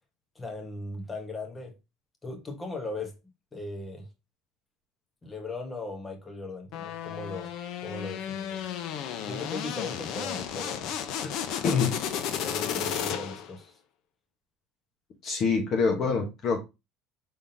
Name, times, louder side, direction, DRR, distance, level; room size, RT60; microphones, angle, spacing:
voice 1, 0.3-1.7 2.2-3.1 3.5-4.1 5.2-7.5 7.8-8.7 9.2-10.9 12.3-13.7, left 2 dB, 15° left, 1.2 m, -38 dB
sound 1, 6.7-13.6, left 9 dB, 60° left, 0.7 m, -33 dB
voice 2, 11.6-12.0 15.2-16.6, left 5 dB, 40° left, 1.0 m, -25 dB
5.5 x 3.6 x 2.7 m
cardioid pair, 150°, 0 cm